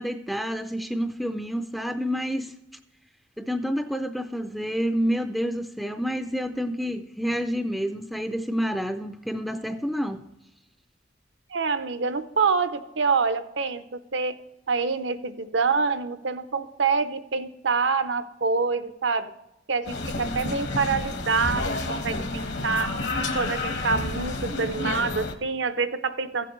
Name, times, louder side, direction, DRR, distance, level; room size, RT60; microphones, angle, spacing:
voice 1, 0.0-2.5 3.4-10.2, equal, ahead, 6 dB, 0.4 m, -28 dB
voice 2, 11.5-14.4 14.7-19.3 19.7-22.9 23.3-26.5, right 4 dB, 70° right, 11 dB, 0.7 m, -26 dB
sound 1, 19.9-25.3, left 2 dB, 65° left, 1.1 m, -30 dB
15.5 x 7.6 x 3.1 m, 0.91 s
head